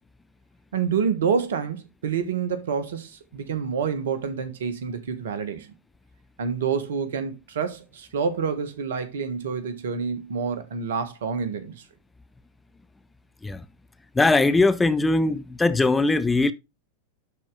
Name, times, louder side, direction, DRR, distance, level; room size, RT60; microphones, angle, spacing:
voice 1, 0.7-5.7 6.4-11.8, right 6 dB, 60° right, 1.4 m, -28 dB
voice 2, 14.2-16.5, left 3 dB, 10° left, 0.6 m, -20 dB
11.5 x 4.4 x 3.8 m
figure-of-eight pair, 90°, 0 cm